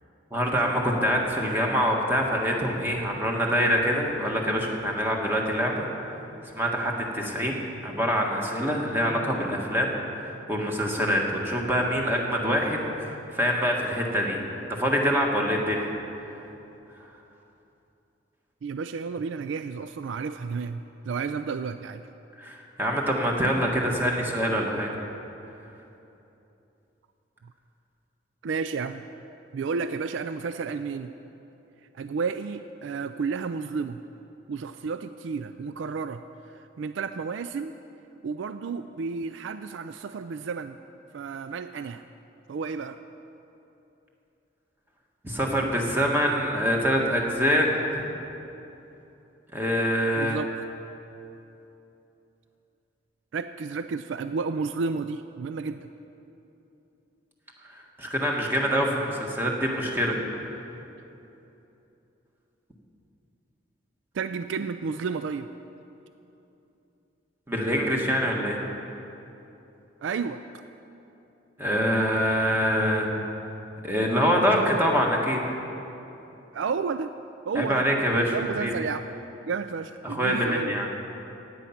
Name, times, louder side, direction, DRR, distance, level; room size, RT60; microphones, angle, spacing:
voice 1, 0.3-5.8 6.6-14.4 14.7-15.9 16.2-16.4 22.4-24.9 45.2-48.0 49.5-50.4 58.0-60.2 67.5-68.6 71.6-73.1 73.8-75.4 77.5-78.7 80.0-80.9, equal, 10° right, -1 dB, 1.5 m, -25 dB
voice 2, 18.6-22.0 28.4-29.0 29.5-31.1 31.9-34.0 34.5-36.2 36.5-37.7 38.2-40.8 41.1-42.0 42.5-43.0 50.2-50.5 53.3-55.9 64.1-65.5 70.0-70.4 76.5-77.1 77.5-77.9 78.3-79.0 79.5-80.8, right 5 dB, 75° right, 10 dB, 0.4 m, -31 dB
16.0 x 9.6 x 5.8 m, 2.9 s
head